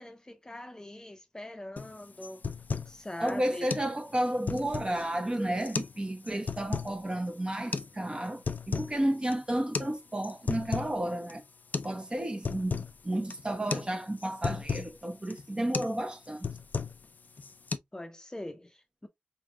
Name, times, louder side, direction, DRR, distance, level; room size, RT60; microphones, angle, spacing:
voice 1, 0.0-2.5 2.9-3.7 17.9-19.1, left 1 dB, 20° left, 0.7 m, -43 dB
sound 1, 1.8-1.9 2.2-3.0 3.3-3.4 3.7-3.9 4.3-5.0 5.6-6.0 6.3-6.9 7.7-7.9 8.3-9.0 9.2-9.4 9.7-9.9 10.2-11.0 11.3-11.4 11.7-12.0 12.2-12.9 13.3-13.5 13.7-13.9 14.2-14.9 15.3-15.5 15.7-16.0 16.2-17.1 17.4-17.8, left 5 dB, 60° left, 0.4 m, -34 dB
voice 2, 3.2-11.4 11.8-16.5, right 1 dB, 30° right, 1.0 m, -32 dB
4.2 x 3.5 x 2.3 m
wide cardioid pair, 70°, 3 cm